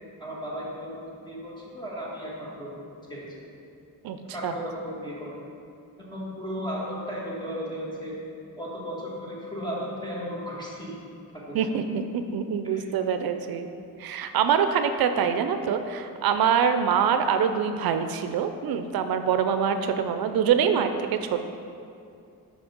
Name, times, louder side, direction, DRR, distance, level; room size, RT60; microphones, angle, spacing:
voice 1, 0.2-3.4 4.3-5.4 6.0-8.1 8.6-11.0 11.5-11.7 12.6-12.9, equal, 10° left, -5 dB, 1.6 m, -35 dB
voice 2, 11.5-12.0 12.3-13.7 14.0-21.4, right 7 dB, 75° right, 8 dB, 0.5 m, -24 dB
6.0 x 5.4 x 5.1 m, 2.5 s
wide cardioid pair, 120°, 37 cm